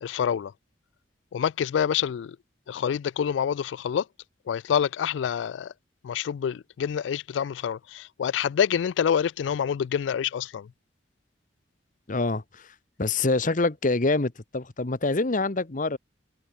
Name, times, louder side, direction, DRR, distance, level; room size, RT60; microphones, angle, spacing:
voice 1, 0.0-0.5 1.3-2.4 2.7-4.1 4.5-5.7 6.0-10.7, left 8 dB, 75° left, 0.3 m, -27 dB
voice 2, 12.1-12.7 13.0-16.0, left 3 dB, 45° left, 1.1 m, -26 dB
head